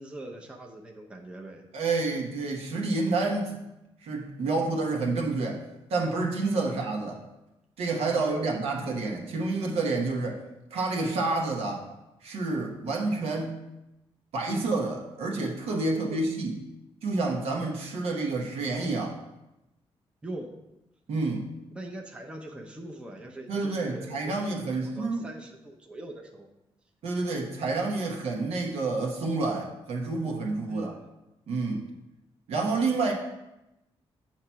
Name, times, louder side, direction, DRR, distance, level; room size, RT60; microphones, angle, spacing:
voice 1, 0.0-1.7 6.6-6.9 8.1-8.5 15.9-16.2 20.2-20.5 21.8-24.5 24.9-26.5 30.7-31.1, right 1 dB, 10° right, 1 dB, 0.6 m, -42 dB
voice 2, 1.7-3.6 4.0-5.6 5.9-7.2 7.8-10.4 10.7-11.9 12.2-13.6 14.3-16.6 17.0-19.2 21.1-21.5 23.5-25.3 27.0-30.9 31.5-31.8 32.5-33.1, right 3 dB, 80° right, 0 dB, 1.0 m, -29 dB
7.2 x 2.9 x 5.6 m, 0.94 s
wide cardioid pair, 165°, 10 cm